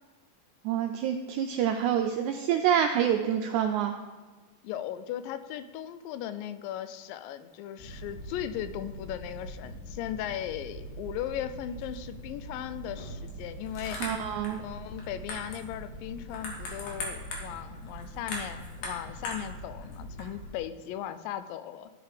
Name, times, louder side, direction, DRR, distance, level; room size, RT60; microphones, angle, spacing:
voice 1, 0.6-3.9 14.0-14.6, right 9 dB, 85° right, 5 dB, 1.7 m, -27 dB
voice 2, 4.6-14.0 14.6-21.9, left 11 dB, 85° left, 12 dB, 2.3 m, -37 dB
sound 1, 7.8-20.6, left 1 dB, 70° left, 3.0 m, -41 dB
13.0 x 4.7 x 5.0 m, 1.3 s
omnidirectional pair, 3.9 m